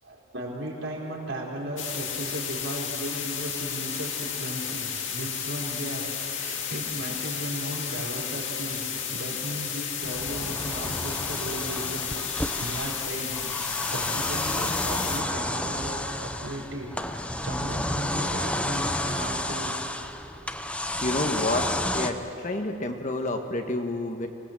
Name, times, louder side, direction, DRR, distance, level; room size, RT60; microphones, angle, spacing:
voice 1, 0.0-12.1 12.6-16.9 17.2-20.0, right 1 dB, 65° right, -2 dB, 4.7 m, -36 dB
sound 1, 1.8-15.2, left 7 dB, 65° left, 2.5 m, -33 dB
sound 2, 10.0-22.1, left 1 dB, 5° left, 0.8 m, -31 dB
voice 2, 21.0-21.7 21.9-22.2 22.4-24.3, left 2 dB, 40° left, 4 dB, 1.5 m, -28 dB
25.0 x 19.0 x 7.6 m, 2.8 s
head